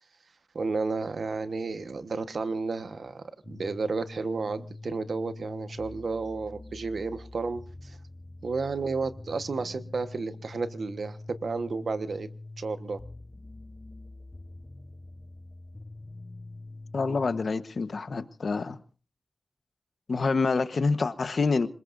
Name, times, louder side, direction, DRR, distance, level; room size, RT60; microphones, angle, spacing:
voice 1, 0.5-8.0 8.4-12.3 12.6-13.0, right 4 dB, 85° right, 11 dB, 1.2 m, -32 dB
sound 1, 3.4-17.5, left 2 dB, 30° left, 0.8 m, -45 dB
voice 2, 16.9-18.8 20.1-21.7, left 4 dB, 80° left, 12 dB, 1.1 m, -27 dB
27.0 x 20.0 x 2.6 m, 0.38 s
cardioid pair, 50°, 0 cm